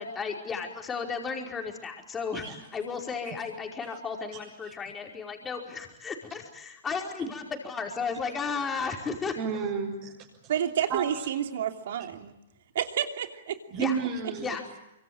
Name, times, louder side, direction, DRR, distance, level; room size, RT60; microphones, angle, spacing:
voice 1, 0.0-2.4 2.7-9.4 13.8-14.0 14.4-14.6, left 5 dB, 15° left, 2 dB, 5.0 m, -34 dB
voice 2, 9.3-10.3 10.9-11.0 13.7-14.5, right 6 dB, 40° right, -2 dB, 7.0 m, -31 dB
voice 3, 10.5-12.3 12.7-13.6, right 9 dB, 65° right, 6 dB, 3.0 m, -29 dB
25.5 x 24.5 x 8.9 m, 0.88 s
hypercardioid pair, 135°, 0 cm